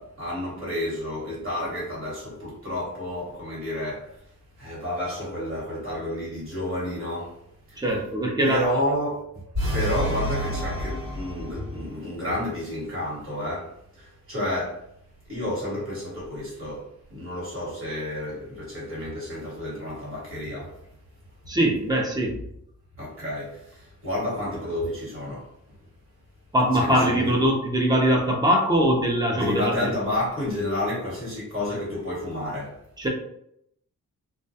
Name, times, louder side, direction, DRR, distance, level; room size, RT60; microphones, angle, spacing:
voice 1, 0.0-4.1 4.6-7.3 7.7-7.8 8.4-9.2 9.7-14.8 15.3-20.8 23.0-25.5 26.8-27.3 29.3-32.8, left 1 dB, 45° right, -6 dB, 1.3 m, -30 dB
voice 2, 7.8-8.6 21.5-22.3 26.5-29.9 33.0-33.1, equal, 15° right, 0 dB, 0.4 m, -22 dB
sound 1, 9.5-11.8, equal, 65° right, 1.2 m, -28 dB
2.2 x 2.2 x 2.7 m, 0.74 s
wide cardioid pair, 165°, 31 cm